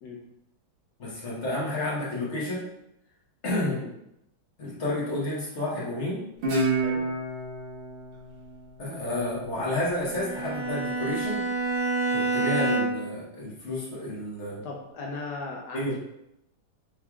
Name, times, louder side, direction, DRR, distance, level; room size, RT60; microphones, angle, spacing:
voice 1, 1.0-2.7 3.4-3.8 4.6-6.3 8.8-11.4 12.1-14.6 15.7-16.0, left 1 dB, 40° left, -5 dB, 1.1 m, -30 dB
voice 2, 3.6-3.9 6.8-7.1 12.5-12.7 14.6-16.0, left 3 dB, 80° left, -1 dB, 0.9 m, -37 dB
Guitar, 6.4-9.7, right 2 dB, 70° right, 2.0 m, -30 dB
Bowed string instrument, 10.1-13.2, right 3 dB, 85° right, 1.9 m, -28 dB
5.8 x 3.2 x 2.3 m, 0.83 s
omnidirectional pair, 2.4 m